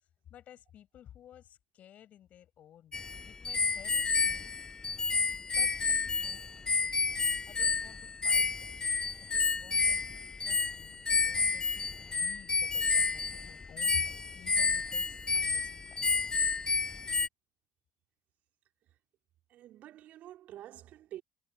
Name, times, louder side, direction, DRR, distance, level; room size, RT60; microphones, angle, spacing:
voice 1, 0.3-4.6 5.0-7.0 7.5-8.7 9.2-16.3, left 11 dB, 45° left, 6.7 m, -54 dB
sound 1, 2.9-17.3, left 4 dB, 20° left, 0.4 m, -30 dB
voice 2, 19.5-21.2, right 13 dB, 50° right, 3.8 m, -48 dB
figure-of-eight pair, 55°, 3 cm